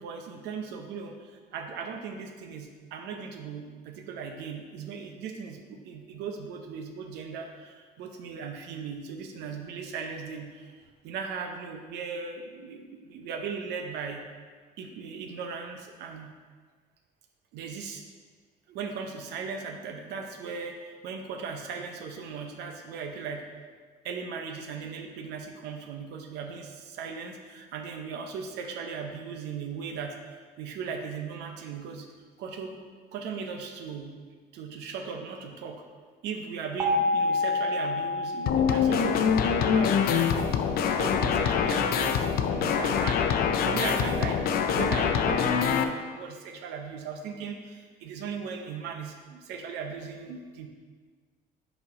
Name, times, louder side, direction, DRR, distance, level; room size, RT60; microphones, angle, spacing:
voice 1, 0.0-10.7 11.0-14.2 14.8-16.3 17.5-18.0 18.7-23.4 24.0-30.1 30.6-32.1 32.4-32.8 33.1-34.1 34.5-35.8 36.2-40.5 40.9-44.4 44.7-50.7, right 5 dB, 85° right, 4 dB, 0.7 m, -37 dB
sound 1, 36.8-39.8, left 2 dB, 25° right, 1.1 m, -29 dB
sound 2, 38.5-45.8, left 7 dB, 65° left, 0.5 m, -25 dB
5.6 x 4.4 x 4.8 m, 1.5 s
cardioid pair, 110°, 17 cm